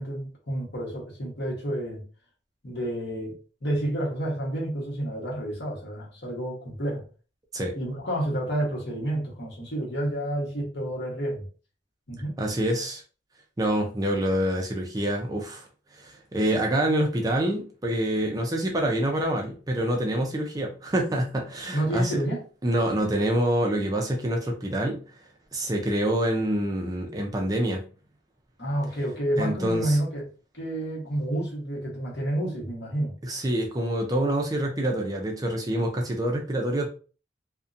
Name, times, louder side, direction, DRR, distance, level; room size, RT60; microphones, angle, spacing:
voice 1, 0.0-2.0 2.6-7.0 7.7-11.4 12.1-12.4 21.7-22.4 28.6-30.2 30.5-33.1, right 1 dB, 60° left, 1.0 m, -29 dB
voice 2, 12.4-13.0 13.6-15.7 15.9-22.2 22.6-25.0 25.5-27.8 29.4-30.0 33.2-36.9, right 1 dB, 20° right, 0.4 m, -26 dB
2.6 x 2.1 x 2.4 m
head